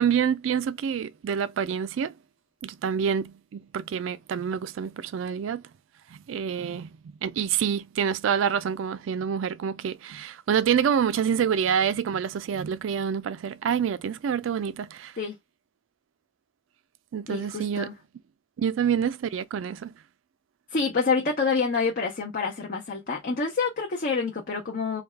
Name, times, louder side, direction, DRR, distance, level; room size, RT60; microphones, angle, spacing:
voice 1, 0.0-2.1 2.6-5.6 6.3-6.9 7.2-15.1 17.1-17.9 18.6-19.9, right 7 dB, 85° right, 0.3 m, -27 dB
voice 2, 17.3-17.9 20.7-25.0, left 4 dB, 50° left, 0.7 m, -27 dB
3.3 x 2.3 x 3.3 m
head